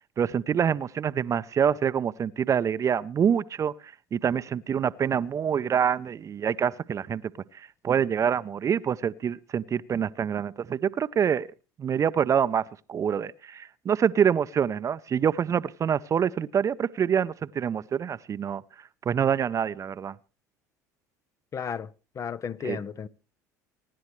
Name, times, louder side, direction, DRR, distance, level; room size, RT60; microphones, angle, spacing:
voice 1, 0.2-7.2 7.5-11.5 11.8-12.6 12.9-18.6 19.1-20.1 22.6-22.8, right 8 dB, 35° right, 0.6 m, -26 dB
voice 2, 21.5-21.9 22.1-23.1, left 7 dB, 35° left, 0.6 m, -33 dB
24.5 x 10.5 x 3.2 m
hypercardioid pair, 75°, 9 cm